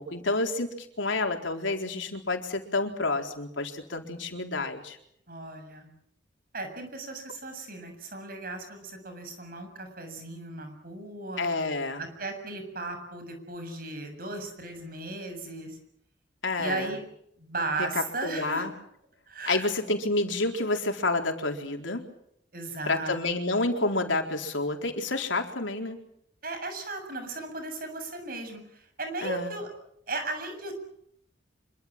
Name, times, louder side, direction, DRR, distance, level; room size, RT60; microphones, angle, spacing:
voice 1, 0.0-5.0 11.4-12.0 16.4-16.9 17.8-18.7 19.5-22.0 22.9-26.0 29.2-29.5, left 2 dB, 90° left, 4 dB, 4.2 m, -29 dB
voice 2, 5.3-5.9 6.5-11.4 12.0-15.8 16.6-17.0 17.4-18.7 19.3-19.9 22.5-23.4 26.4-29.7 30.1-30.9, right 2 dB, 50° right, 6 dB, 7.2 m, -36 dB
26.5 x 24.0 x 7.6 m, 0.72 s
head